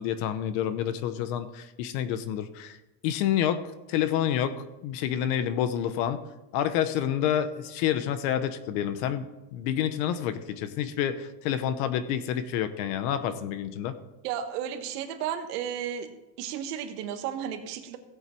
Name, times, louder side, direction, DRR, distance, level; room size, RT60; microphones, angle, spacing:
voice 1, 0.0-2.8 3.0-6.2 6.5-14.0, left 10 dB, 50° left, 12 dB, 0.9 m, -28 dB
voice 2, 14.2-16.1 16.4-18.0, right 9 dB, 70° right, 7 dB, 1.6 m, -33 dB
16.5 x 8.0 x 4.5 m, 1.0 s
supercardioid pair, 165°, 49 cm